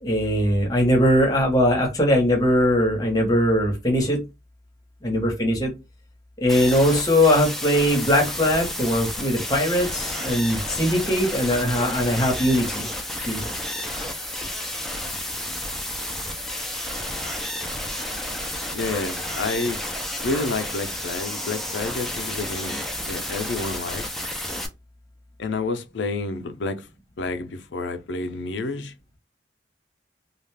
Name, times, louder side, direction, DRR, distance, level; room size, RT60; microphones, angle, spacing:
voice 1, 0.0-4.2 5.0-5.7 6.4-12.9 13.3-13.4, equal, 20° left, 0.9 m, -20 dB
sound 1, 6.5-24.7, left 1 dB, ahead, 0.4 m, -31 dB
voice 2, 18.7-19.8 20.2-22.8 23.1-24.1 25.4-26.9 27.2-28.9, left 3 dB, 85° left, 0.5 m, -29 dB
2.4 x 2.2 x 3.3 m
head